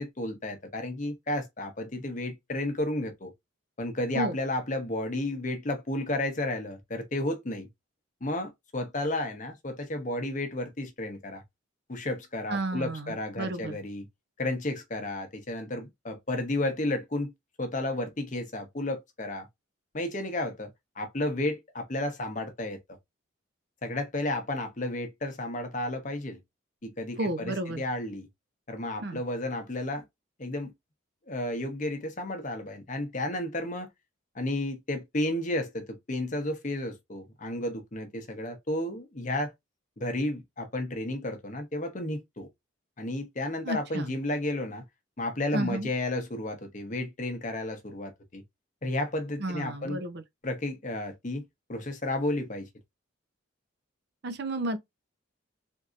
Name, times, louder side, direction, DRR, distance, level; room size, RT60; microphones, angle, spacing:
voice 1, 0.0-3.3 3.8-7.7 8.2-11.4 11.9-14.1 14.4-17.3 17.6-19.5 19.9-20.7 21.0-22.8 23.8-26.4 26.8-28.3 28.7-30.0 30.4-30.7 31.3-33.9 34.3-39.5 40.0-42.5 43.0-44.8 45.2-48.4 48.8-50.0 50.4-51.4 51.7-52.7, left 1 dB, 35° left, 0.8 m, -32 dB
voice 2, 12.5-13.8 27.2-27.8 29.0-29.2 43.6-44.1 45.5-45.9 49.4-50.2 54.2-54.8, right 1 dB, 50° right, 0.6 m, -32 dB
3.6 x 2.7 x 2.4 m
head